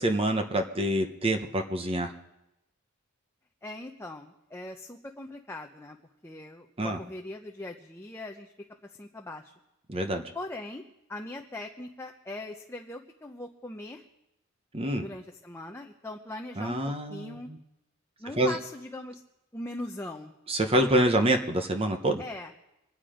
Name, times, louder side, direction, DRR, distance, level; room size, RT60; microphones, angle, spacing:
voice 1, 0.0-2.1 6.8-7.0 9.9-10.2 14.7-15.1 16.6-17.6 18.4-18.6 20.5-22.2, right 1 dB, 25° right, 5 dB, 0.9 m, -26 dB
voice 2, 3.6-6.0 6.2-8.5 9.0-9.4 10.3-10.8 11.1-14.0 15.0-16.8 17.1-17.5 18.2-19.2 19.5-20.3 22.2-22.5, left 2 dB, 10° left, 2 dB, 0.7 m, -40 dB
24.0 x 9.6 x 5.0 m, 0.89 s
head